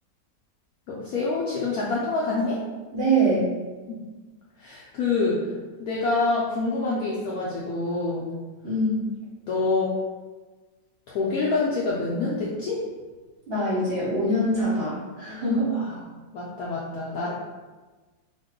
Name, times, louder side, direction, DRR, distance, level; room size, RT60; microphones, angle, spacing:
voice 1, 0.9-2.6 3.9-4.0 4.6-5.5 5.8-8.3 9.5-9.9 11.1-12.8 15.7-15.9 16.3-17.3, left 3 dB, 75° left, -6 dB, 0.8 m, -26 dB
voice 2, 2.9-3.5 8.6-9.1 13.5-15.7, right 1 dB, 50° right, -9 dB, 0.7 m, -24 dB
3.0 x 2.1 x 3.5 m, 1.3 s
omnidirectional pair, 2.0 m